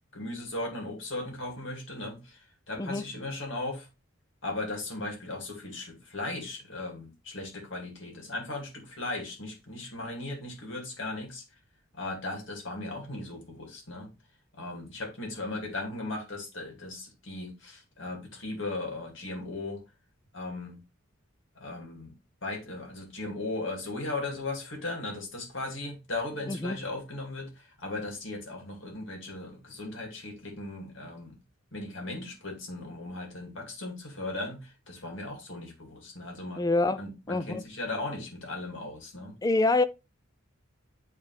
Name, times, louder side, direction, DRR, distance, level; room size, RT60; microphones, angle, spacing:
voice 1, 0.1-3.9 4.4-11.4 11.9-14.1 14.5-19.8 20.3-20.8 21.6-22.1 22.4-31.4 31.7-36.7 37.0-39.3, left 2 dB, 60° left, 2.4 m, -37 dB
voice 2, 36.6-37.0 37.3-37.6 39.4-39.8, left 2 dB, 15° left, 0.3 m, -26 dB
8.7 x 3.6 x 3.3 m
head